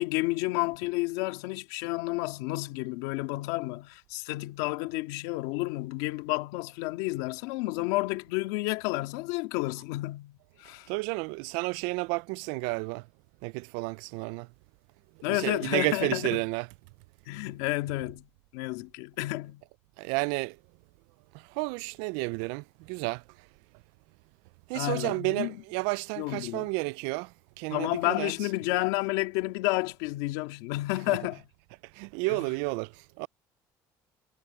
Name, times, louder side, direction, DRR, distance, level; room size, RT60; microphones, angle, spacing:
voice 1, 0.0-10.9 15.2-16.4 17.3-19.6 24.7-25.6 26.2-26.7 27.7-31.5 32.3-32.5, left 20 dB, 90° left, 2.0 m, -31 dB
voice 2, 10.9-13.1 13.4-14.5 15.3-16.7 20.0-20.6 21.3-23.2 24.7-28.3 31.1-31.2 31.9-33.3, right 27 dB, 85° right, 0.4 m, -31 dB
cardioid pair, 105°, 8 cm